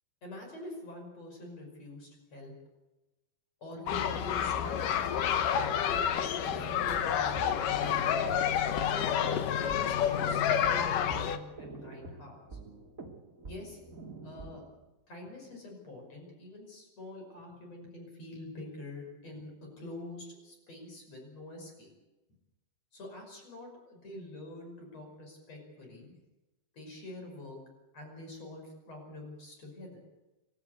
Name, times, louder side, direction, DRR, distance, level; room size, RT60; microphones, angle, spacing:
voice 1, 0.2-2.5 3.6-5.0 5.5-8.1 8.8-9.1 9.6-12.6 13.5-13.8 14.2-14.6 15.1-21.9 22.9-26.0 26.7-27.6 27.9-30.0, left 2 dB, 45° left, 2 dB, 6.6 m, -46 dB
sound 1, 3.9-11.4, left 9 dB, 70° left, 2.6 m, -29 dB
sound 2, 5.9-14.8, right 3 dB, 25° right, 2.4 m, -47 dB
28.5 x 13.5 x 8.3 m, 1.0 s
omnidirectional pair, 4.2 m